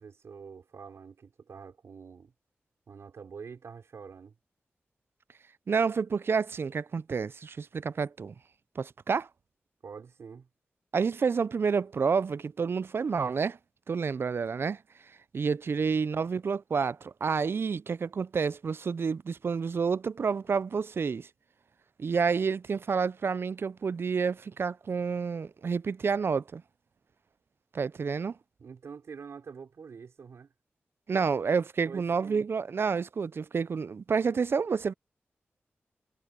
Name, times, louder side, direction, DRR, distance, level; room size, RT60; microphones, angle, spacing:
voice 1, 0.0-2.3 2.9-4.3 9.8-10.5 28.6-30.5 31.9-32.5, right 6 dB, 80° right, 4.8 m, -46 dB
voice 2, 5.7-8.3 8.8-9.3 10.9-13.6 13.9-14.8 15.3-21.3 22.0-26.6 27.7-28.4 31.1-34.9, right 5 dB, 60° right, 0.4 m, -29 dB
cardioid pair, 65°, 5 cm